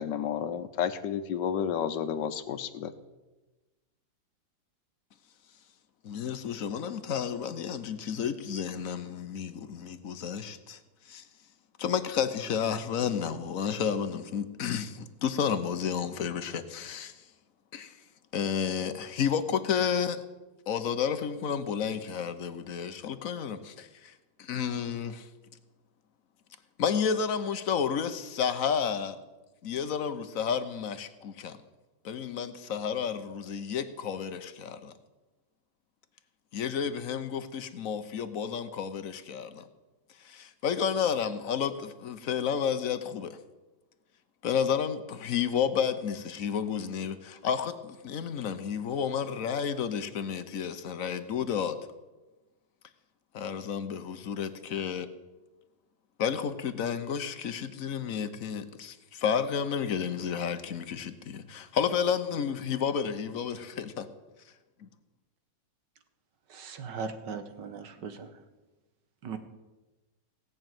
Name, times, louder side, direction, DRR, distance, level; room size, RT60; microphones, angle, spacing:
voice 1, 0.0-2.9, left 8 dB, 75° left, 12 dB, 1.5 m, -31 dB
voice 2, 6.0-10.8 11.1-11.2 11.8-17.1 17.7-18.0 18.3-20.2 20.7-24.1 24.4-25.3 26.8-29.2 29.6-31.6 32.0-34.9 36.5-39.6 40.2-43.4 44.4-51.8 53.3-55.1 56.2-64.1 64.8-64.9, left 7 dB, 55° left, 11 dB, 1.1 m, -31 dB
voice 3, 66.5-68.3 69.2-69.4, right 5 dB, 75° right, 9 dB, 1.8 m, -38 dB
17.5 x 6.4 x 9.1 m, 1.1 s
omnidirectional pair, 1.9 m